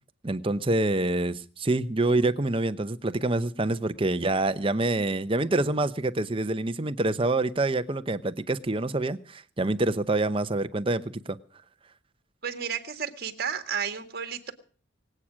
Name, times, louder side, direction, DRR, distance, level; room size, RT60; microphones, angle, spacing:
voice 1, 0.2-11.4, right 2 dB, 25° right, 11 dB, 0.8 m, -26 dB
voice 2, 12.4-14.5, right 7 dB, 50° right, 8 dB, 1.9 m, -32 dB
23.0 x 8.8 x 6.3 m, 0.43 s
head